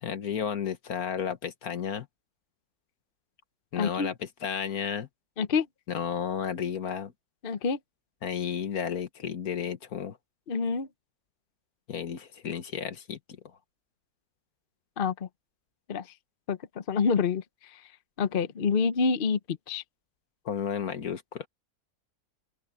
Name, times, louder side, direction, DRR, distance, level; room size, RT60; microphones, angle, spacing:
voice 1, 0.0-2.1 3.7-5.1 5.9-7.1 8.2-10.2 11.9-13.2 20.5-21.5, left 7 dB, 65° left, 1.8 m, -32 dB
voice 2, 3.7-4.1 5.4-5.7 7.4-7.8 10.5-10.9 15.0-15.3 15.9-16.1 16.5-17.9 18.2-19.8, left 5 dB, 45° left, 0.8 m, -27 dB
open air
omnidirectional pair, 1.7 m